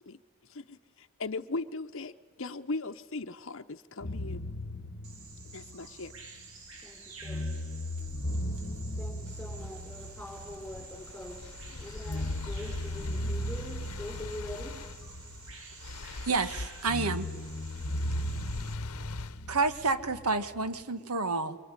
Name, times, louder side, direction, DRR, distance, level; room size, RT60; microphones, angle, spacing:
voice 1, 0.5-4.4 5.5-6.1, left 3 dB, 60° left, 9 dB, 0.8 m, -38 dB
sound 1, 4.0-6.8 7.2-11.5 12.0-16.1 16.8-20.8, left 1 dB, 45° left, 1.1 m, -37 dB
Bird vocalization bird call bird song, 5.0-18.7, right 4 dB, 70° right, 3.1 m, -50 dB
voice 2, 6.8-7.6 9.0-14.8, left 1 dB, 5° left, 2 dB, 5.7 m, -44 dB
sound 2, 9.3-20.2, left 3 dB, 90° left, 0.9 m, -43 dB
voice 3, 16.3-17.3 19.5-21.6, right 4 dB, 90° right, 11 dB, 1.5 m, -29 dB
24.5 x 24.0 x 9.9 m, 1.5 s
head